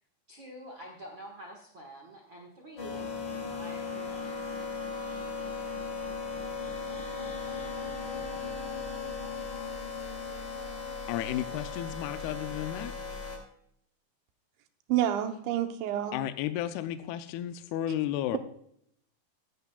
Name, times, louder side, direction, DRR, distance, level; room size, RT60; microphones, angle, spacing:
voice 1, 0.3-3.1 3.5-5.3, right 1 dB, 70° right, 0 dB, 1.1 m, -48 dB
sound 1, 2.8-13.4, left 4 dB, 30° left, 2.5 m, -37 dB
voice 2, 11.1-12.9 16.1-18.4, left 12 dB, 80° left, 9 dB, 2.4 m, -33 dB
voice 3, 14.9-16.2, right 11 dB, 90° right, 7 dB, 3.2 m, -28 dB
15.5 x 11.0 x 2.3 m, 0.69 s
omnidirectional pair, 5.0 m